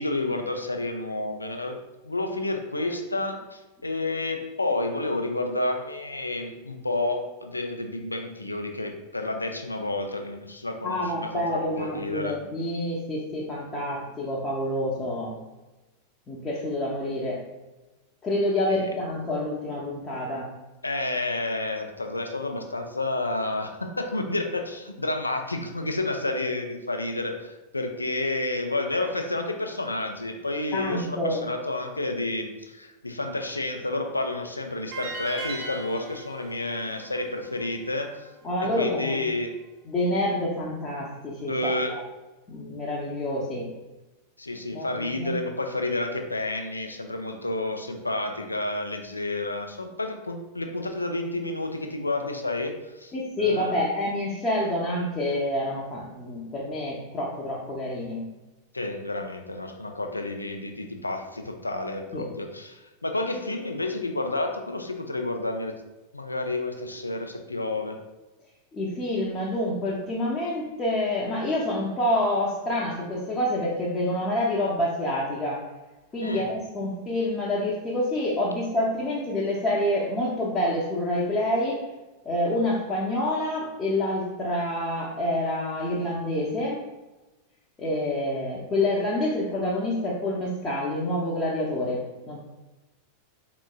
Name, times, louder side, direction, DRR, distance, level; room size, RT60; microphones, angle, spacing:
voice 1, 0.0-1.8 2.0-12.4 18.7-18.9 20.8-38.3 38.6-39.5 41.5-42.0 44.4-53.9 58.7-65.8 66.1-68.0 76.2-76.5, left 2 dB, 80° left, 5 dB, 0.4 m, -30 dB
voice 2, 10.8-15.4 16.3-17.4 18.2-20.5 30.7-31.4 38.4-39.2 39.9-42.0 42.5-43.7 44.7-44.9 45.2-45.3 53.1-58.2 62.1-62.3 68.7-75.6 76.1-81.8 82.3-86.8 87.8-92.4, left 1 dB, 20° left, -6 dB, 0.6 m, -27 dB
sound 1, 34.9-38.1, right 2 dB, 55° right, 0.8 m, -38 dB
4.2 x 3.0 x 2.3 m, 1.1 s
figure-of-eight pair, 90°, 0 cm